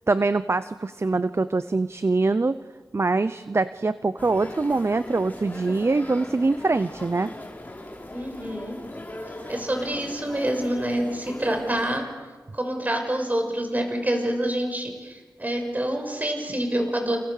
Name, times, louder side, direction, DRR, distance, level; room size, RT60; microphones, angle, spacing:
voice 1, 0.1-2.6 2.9-7.3, right 3 dB, 40° right, 13 dB, 0.8 m, -24 dB
sound 1, 4.2-12.0, left 1 dB, 25° left, 5.2 m, -39 dB
voice 2, 8.1-8.8 9.5-12.1 12.5-17.2, right 1 dB, 25° right, 4 dB, 6.6 m, -27 dB
30.0 x 29.5 x 6.8 m, 1.3 s
wide cardioid pair, 85°, 7 cm